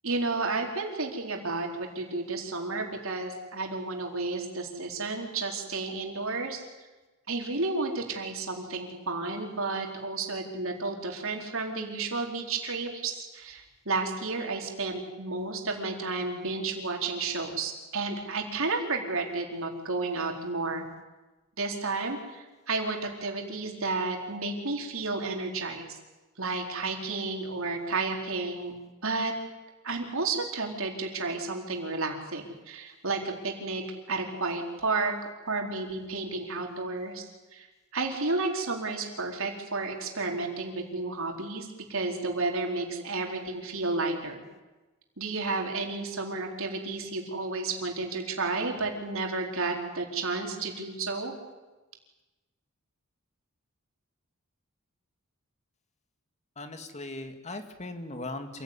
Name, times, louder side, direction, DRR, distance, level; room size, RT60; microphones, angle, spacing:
voice 1, 0.0-6.7 7.3-20.8 21.6-26.0 26.4-28.7 29.0-29.3 29.8-33.8 34.1-35.1 35.4-37.7 37.9-44.4 45.2-51.3, right 3 dB, 70° right, 2 dB, 4.4 m, -32 dB
voice 2, 56.6-58.6, left 2 dB, 35° left, 7 dB, 2.4 m, -38 dB
27.5 x 16.5 x 9.9 m, 1.1 s
head